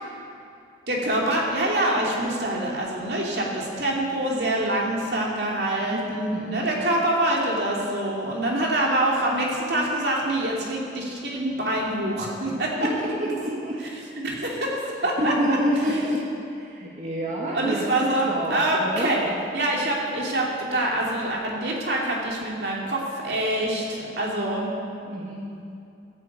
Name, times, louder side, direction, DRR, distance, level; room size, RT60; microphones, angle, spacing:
voice 1, 0.9-12.7 13.9-15.3 15.9-16.0 17.5-24.7, right 1 dB, 65° right, -3 dB, 2.9 m, -25 dB
voice 2, 5.9-6.6 12.8-13.8 15.2-16.3 16.6-17.9 18.3-19.2 25.1-25.4, equal, 40° right, -5 dB, 1.8 m, -28 dB
14.0 x 10.0 x 8.2 m, 2.6 s
head